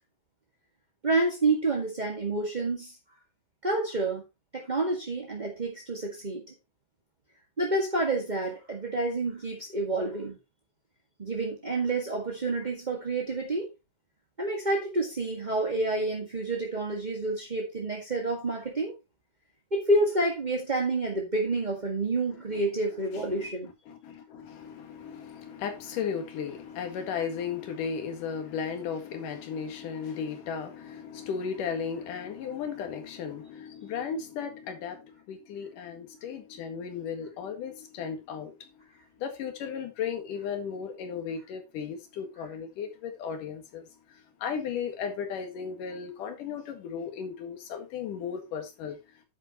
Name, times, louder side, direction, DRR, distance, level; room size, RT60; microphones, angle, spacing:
voice 1, 1.0-3.0 3.6-4.2 4.5-6.4 7.6-10.4 11.2-13.7 14.4-19.0 19.7-23.7, right 2 dB, 20° right, 1.2 m, -29 dB
voice 2, 23.1-23.5 23.9-38.7 39.2-49.0, left 7 dB, 85° left, 3.4 m, -35 dB
9.9 x 9.0 x 3.0 m
omnidirectional pair, 3.6 m